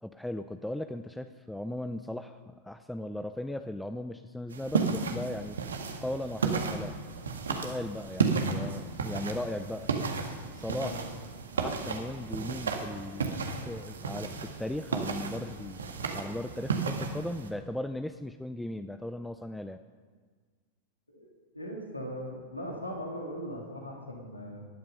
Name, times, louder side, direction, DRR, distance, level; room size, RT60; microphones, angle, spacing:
voice 1, 0.0-5.6 6.0-7.0 7.5-9.9 10.5-11.0 11.6-19.8, left 1 dB, 5° left, 9 dB, 0.6 m, -37 dB
sound 1, 4.5-17.5, right 4 dB, 70° right, 1.8 m, -33 dB
voice 2, 21.5-24.6, equal, 85° left, 0 dB, 3.1 m, -39 dB
19.5 x 12.0 x 5.7 m, 1.6 s
figure-of-eight pair, 90°, 0 cm